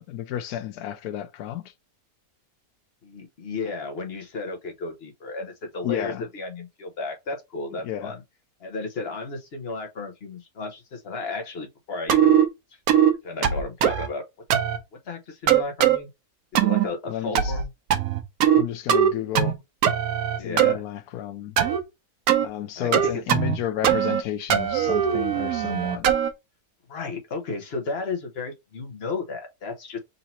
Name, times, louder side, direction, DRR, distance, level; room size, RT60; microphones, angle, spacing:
voice 1, 0.0-1.7 5.8-6.2 7.8-8.1 17.1-17.5 18.6-19.6 20.4-21.6 22.4-26.1, left 11 dB, 85° left, 1.1 m, -31 dB
voice 2, 3.0-8.2 8.6-12.4 13.2-14.2 15.1-16.1 16.5-17.7 20.4-20.8 22.8-23.2 26.9-30.0, left 3 dB, 45° left, 1.1 m, -33 dB
sound 1, 12.1-12.5 12.9-13.1 13.4-14.1 14.5-14.8 15.5-16.0 16.6-16.9 17.4-17.7 17.9-18.6 18.9-19.5 19.8-20.7 21.6-21.8 22.3-22.5 22.9-23.6 23.8-24.2 24.5-26.3, right 9 dB, 80° right, 1.2 m, -20 dB
4.0 x 2.7 x 4.3 m
omnidirectional pair, 1.6 m